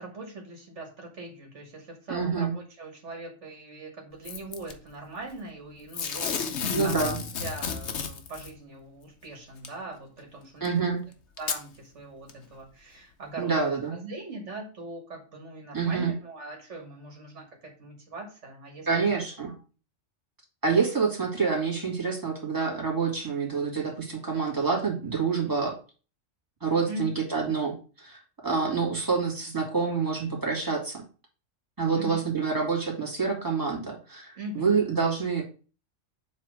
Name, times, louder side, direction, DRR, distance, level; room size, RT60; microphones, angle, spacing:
voice 1, 0.0-7.0 7.4-10.8 11.4-19.2 19.5-19.6 26.9-27.1 31.9-32.3 34.4-34.8, right 2 dB, 70° right, 2 dB, 2.0 m, -41 dB
voice 2, 2.1-2.5 6.7-7.2 10.6-11.0 13.4-13.9 15.7-16.1 18.9-19.5 20.6-25.8 26.6-31.0 31.8-35.4, right 5 dB, 15° right, -2 dB, 2.3 m, -27 dB
Packing tape duct tape / Tearing, 4.2-4.7 5.9-8.5 9.6-9.7 10.6-10.7 11.4-11.6 12.3-12.4, left 6 dB, 65° left, 1.2 m, -32 dB
7.3 x 3.2 x 6.1 m, 0.35 s
omnidirectional pair, 1.3 m